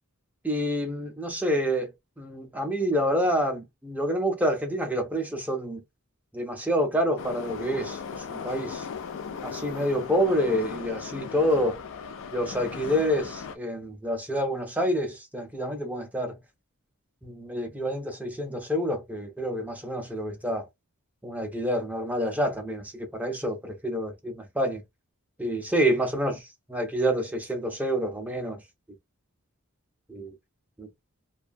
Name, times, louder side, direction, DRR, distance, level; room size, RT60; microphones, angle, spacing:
voice 1, 0.4-1.9 2.2-5.8 6.3-8.9 9.4-11.8 12.3-16.4 17.2-20.7 21.2-24.8 25.4-28.6 30.1-30.4 30.8-30.9, equal, 5° right, 0.4 m, -28 dB
Subway metro underground, 7.2-13.6, left 6 dB, 65° left, 0.4 m, -37 dB
2.5 x 2.3 x 2.5 m
head